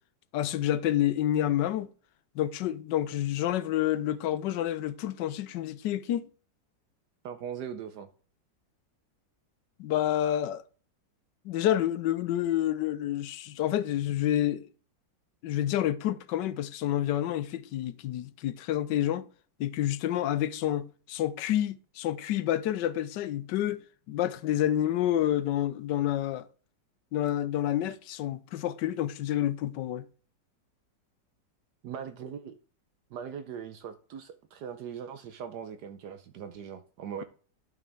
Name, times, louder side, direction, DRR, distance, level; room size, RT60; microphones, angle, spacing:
voice 1, 0.3-1.9 2.4-6.3 9.8-10.6 11.4-14.7 15.4-19.2 19.6-26.5 27.1-30.0, left 12 dB, 80° left, 1.3 m, -29 dB
voice 2, 7.2-8.1 31.8-32.5 33.1-37.2, right 8 dB, 70° right, 1.2 m, -40 dB
11.0 x 6.1 x 3.4 m
omnidirectional pair, 1.9 m